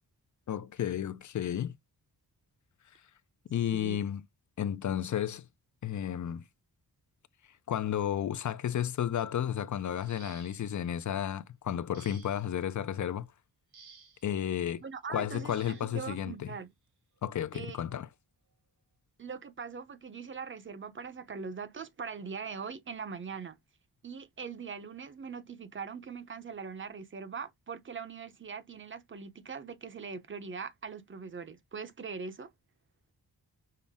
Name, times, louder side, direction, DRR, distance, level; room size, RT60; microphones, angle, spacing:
voice 1, 0.5-1.8 3.5-4.2 4.6-5.5 5.8-6.4 7.7-13.3 14.2-14.8 15.1-16.5 17.2-18.1, left 10 dB, 50° left, 0.4 m, -32 dB
sound 1, 9.9-10.8 11.9-12.6 13.7-14.3 15.5-16.0 17.2-17.3 17.8-18.0, right 6 dB, 80° right, 1.5 m, -56 dB
voice 2, 14.8-16.7 17.5-17.8 19.2-23.6 24.0-32.5, right 5 dB, 30° right, 0.6 m, -41 dB
5.6 x 2.0 x 3.4 m
wide cardioid pair, 160°, 38 cm